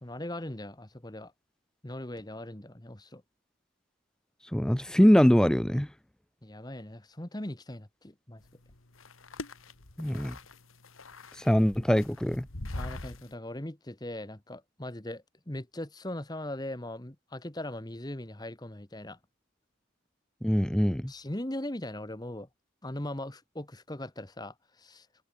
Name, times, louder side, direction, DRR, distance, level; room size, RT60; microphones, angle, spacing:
voice 1, 0.0-1.3 1.8-3.2 6.4-8.4 12.7-19.2 21.1-22.5 22.8-25.2, left 1 dB, 20° left, 1.3 m, -39 dB
voice 2, 4.5-5.9 10.0-10.4 11.4-12.5 20.4-21.1, equal, 5° left, 0.4 m, -23 dB
sound 1, 8.4-13.3, left 2 dB, 85° left, 2.2 m, -43 dB
head